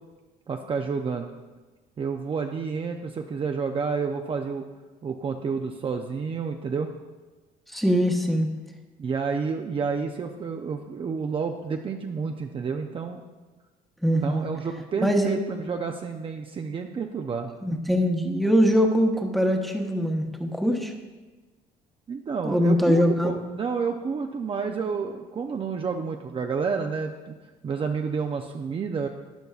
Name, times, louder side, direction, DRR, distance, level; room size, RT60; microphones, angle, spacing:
voice 1, 0.5-1.3 2.0-4.7 5.0-6.9 9.0-13.2 14.2-17.5 22.1-27.3 27.6-29.1, right 5 dB, 30° right, 4 dB, 0.5 m, -30 dB
voice 2, 7.7-8.5 14.0-14.4 15.0-15.4 17.6-20.9 22.4-23.3, equal, ahead, 2 dB, 1.0 m, -22 dB
12.5 x 9.1 x 2.4 m, 1.2 s
cardioid pair, 110°, 17 cm